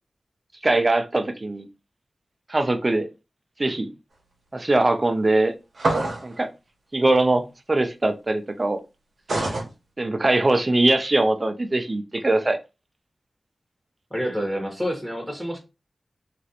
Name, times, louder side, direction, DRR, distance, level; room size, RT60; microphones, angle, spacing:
voice 1, 0.6-1.7 2.5-3.1 3.6-3.9 4.5-5.5 6.2-6.5 6.9-8.8 9.4-9.5 10.0-12.6, right 2 dB, 40° right, 0.5 m, -21 dB
sound 1, 5.8-6.3 9.3-9.7, right 2 dB, 80° right, 0.9 m, -24 dB
voice 2, 14.1-15.6, equal, ahead, 1.1 m, -28 dB
3.0 x 2.5 x 2.8 m
cardioid pair, 50°, 0 cm